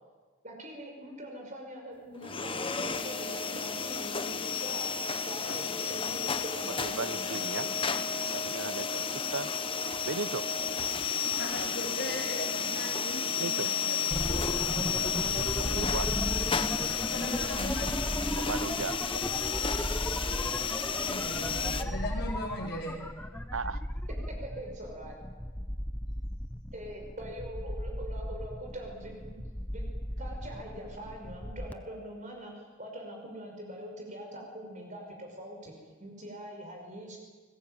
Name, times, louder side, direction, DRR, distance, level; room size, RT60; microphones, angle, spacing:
voice 1, 0.4-7.9 24.3-25.2 26.7-29.4 29.7-29.9 30.2-37.2, right 1 dB, 40° right, 1 dB, 5.5 m, -43 dB
sound 1, 2.2-21.8, left 6 dB, 25° left, 1.3 m, -32 dB
voice 2, 6.8-7.7 8.1-9.5 10.0-10.5 13.4-13.7 15.3-16.1 18.4-19.2 23.5-23.8, right 4 dB, 85° right, 16 dB, 1.1 m, -37 dB
voice 3, 11.4-15.9 17.0-18.8 21.0-23.0, left 1 dB, 55° left, -3 dB, 4.0 m, -39 dB
sound 2, 14.1-31.7, equal, 10° left, 1.1 m, -36 dB
30.0 x 20.5 x 9.1 m, 1.4 s
head